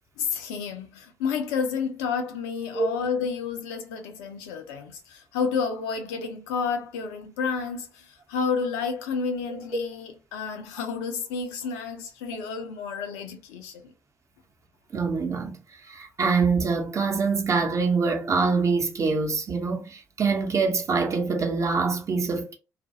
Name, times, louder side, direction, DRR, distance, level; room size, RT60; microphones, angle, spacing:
voice 1, 0.2-13.9, left 5 dB, 75° left, 0.5 m, -30 dB
voice 2, 14.9-15.6 15.9-22.5, right 4 dB, 40° right, 0.8 m, -24 dB
2.4 x 2.2 x 2.7 m
hypercardioid pair, 45°, 8 cm